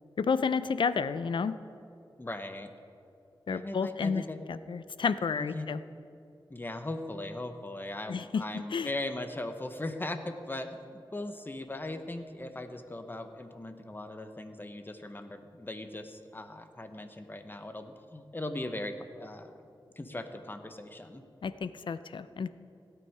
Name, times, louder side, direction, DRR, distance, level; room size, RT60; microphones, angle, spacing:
voice 1, 0.2-1.6 3.5-5.8 8.1-8.9 21.4-22.5, left 5 dB, 70° left, 14 dB, 0.5 m, -31 dB
voice 2, 2.2-2.7 3.5-4.4 5.4-5.7 6.5-19.6 20.0-21.2, left 2 dB, 25° left, 8 dB, 1.0 m, -39 dB
16.5 x 9.3 x 4.7 m, 2.5 s
wide cardioid pair, 65°, 9 cm